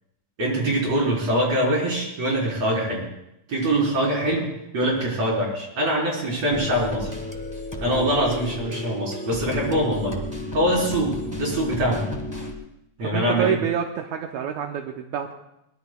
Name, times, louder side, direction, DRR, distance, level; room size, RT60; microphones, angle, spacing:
voice 1, 0.4-3.0 3.5-4.5 4.7-7.1 7.8-10.2 10.5-12.0 13.0-13.6, right 1 dB, 55° right, -3 dB, 5.2 m, -23 dB
sound 1, 6.5-12.5, left 1 dB, 15° left, 0.6 m, -33 dB
voice 2, 13.0-15.3, right 9 dB, 80° right, 3 dB, 2.1 m, -27 dB
22.5 x 20.5 x 2.3 m, 0.85 s
omnidirectional pair, 3.5 m